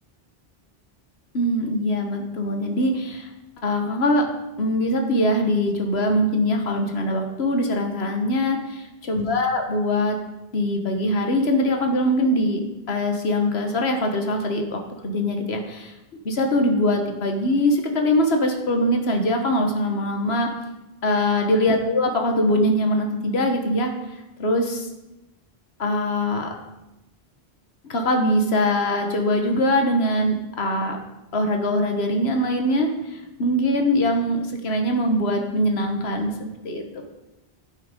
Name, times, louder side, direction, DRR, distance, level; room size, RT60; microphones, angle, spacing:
voice 1, 1.3-3.3 3.6-4.2 4.6-10.2 10.5-12.6 12.9-15.9 16.2-20.5 21.0-23.9 24.4-24.9 25.8-26.5 27.9-31.0 31.3-37.0, left 1 dB, 75° left, 3 dB, 1.5 m, -22 dB
14.5 x 5.8 x 5.2 m, 1.0 s
omnidirectional pair, 1.1 m